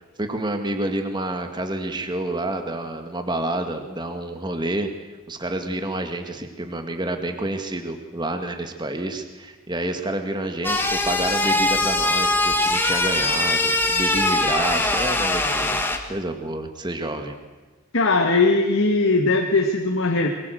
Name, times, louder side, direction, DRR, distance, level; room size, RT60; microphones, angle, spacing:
voice 1, 0.2-4.9 5.3-15.8 16.1-17.3, right 1 dB, 20° right, 6 dB, 1.9 m, -28 dB
sound 1, 10.6-16.0, left 2 dB, 10° left, 1.8 m, -22 dB
voice 2, 17.9-20.3, left 3 dB, 70° left, 3 dB, 1.9 m, -19 dB
23.0 x 22.0 x 8.0 m, 1.2 s
head